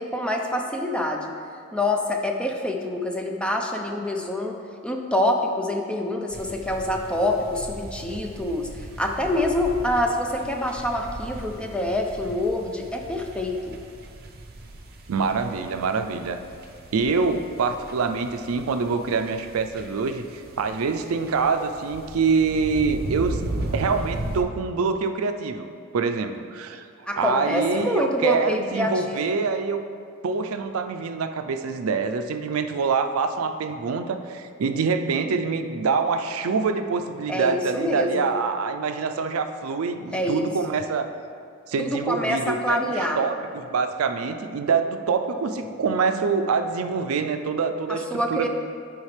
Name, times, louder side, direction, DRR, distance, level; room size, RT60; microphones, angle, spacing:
voice 1, 0.0-1.3 1.7-4.6 4.8-13.8 27.1-29.3 37.3-38.3 40.1-40.4 41.8-43.2 47.9-48.5, left 1 dB, 5° left, 2 dB, 0.5 m, -26 dB
sound 1, 6.3-24.4, right 1 dB, 45° right, 0.7 m, -37 dB
voice 2, 15.1-16.4 16.9-23.4 23.7-25.7 25.9-26.9 27.2-29.8 30.2-41.1 41.7-48.5, right 5 dB, 90° right, 8 dB, 0.4 m, -25 dB
10.5 x 4.9 x 3.2 m, 2.3 s
head